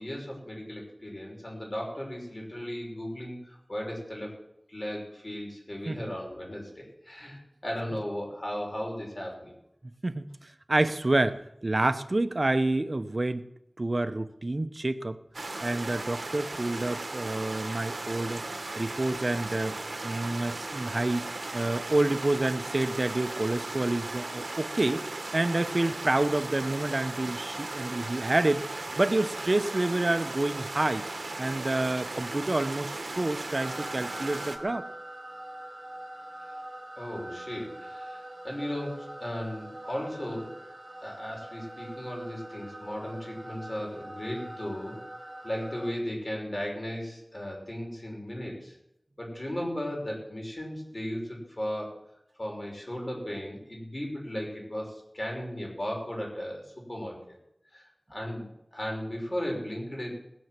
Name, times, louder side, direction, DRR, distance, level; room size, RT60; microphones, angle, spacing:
voice 1, 0.0-4.3 4.7-9.5 36.4-36.5 37.0-40.5 41.0-45.0 45.4-48.8 49.2-52.0 52.4-57.2 57.7-57.8 58.1-60.2, equal, 40° left, -1 dB, 5.7 m, -36 dB
voice 2, 10.7-13.5 13.8-15.2 15.6-18.4 18.8-19.8 20.0-21.2 21.5-31.1 31.4-34.8, right 2 dB, 50° right, 11 dB, 0.9 m, -28 dB
sound 1, 15.3-34.6, right 2 dB, 70° right, 1.5 m, -37 dB
sound 2, 33.6-45.9, right 1 dB, 30° right, 3.6 m, -43 dB
19.5 x 7.1 x 7.6 m, 0.80 s
wide cardioid pair, 55°, 0 cm